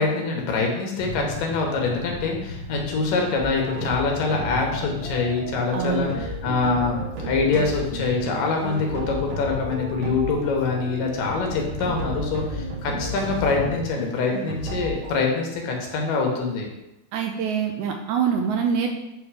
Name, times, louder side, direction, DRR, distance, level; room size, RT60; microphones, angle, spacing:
voice 1, 0.0-7.0 7.2-16.7, left 4 dB, 85° left, 1 dB, 2.8 m, -25 dB
sound 1, 1.0-13.9, left 2 dB, 65° left, 1.8 m, -37 dB
sound 2, 3.3-15.1, right 1 dB, 60° right, 2.5 m, -34 dB
voice 2, 5.7-6.1 17.1-18.9, right 7 dB, 80° right, 3 dB, 1.8 m, -24 dB
8.6 x 3.4 x 4.8 m, 0.94 s
omnidirectional pair, 3.7 m